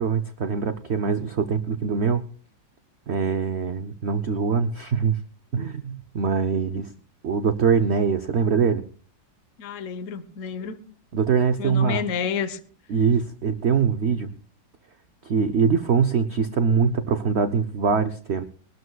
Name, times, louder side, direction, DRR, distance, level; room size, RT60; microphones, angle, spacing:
voice 1, 0.0-2.2 3.1-5.2 5.5-6.9 7.2-8.8 11.1-12.0 12.9-14.3 15.2-18.4, right 6 dB, 80° right, 10 dB, 0.6 m, -23 dB
voice 2, 9.6-10.8 11.6-12.6, left 7 dB, 50° left, 12 dB, 1.1 m, -29 dB
22.5 x 12.5 x 2.3 m, 0.42 s
omnidirectional pair, 2.0 m